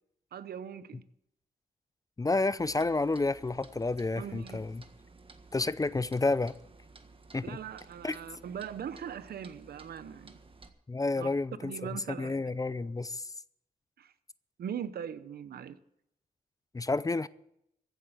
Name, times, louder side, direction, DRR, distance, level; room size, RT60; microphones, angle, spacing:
voice 1, 0.3-1.0 4.2-4.7 7.4-10.4 11.2-11.3 11.6-12.4 14.0-14.1 14.6-15.8, right 8 dB, 80° right, 0.8 m, -40 dB
voice 2, 2.2-4.8 5.5-6.5 7.3-7.6 8.0-8.2 10.9-11.7 12.2-13.3 16.7-17.3, left 3 dB, 20° left, 0.5 m, -30 dB
Clock, 2.6-10.7, right 3 dB, 35° right, 1.6 m, -55 dB
14.5 x 8.4 x 7.9 m
cardioid pair, 80°, 16 cm